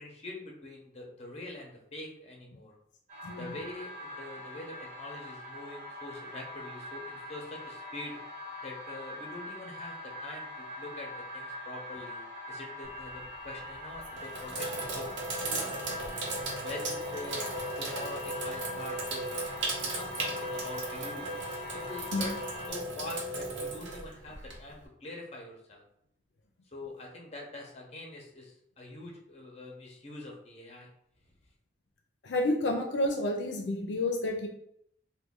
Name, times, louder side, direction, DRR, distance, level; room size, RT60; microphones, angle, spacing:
voice 1, 0.0-2.7 3.3-8.2 8.6-16.0 16.6-17.5 17.8-19.4 19.8-21.4 21.7-22.4 22.7-25.9 26.7-30.9, left 2 dB, 35° left, 0 dB, 0.7 m, -44 dB
sound 1, 3.1-22.7, left 1 dB, 40° right, 1.2 m, -42 dB
voice 2, 3.2-3.5 22.1-22.3 32.2-34.5, left 1 dB, 75° left, 2 dB, 0.5 m, -30 dB
Sink (filling or washing), 12.9-13.3 13.9-24.8, right 2 dB, 90° right, 0.7 m, -36 dB
3.0 x 2.2 x 3.6 m, 0.73 s
head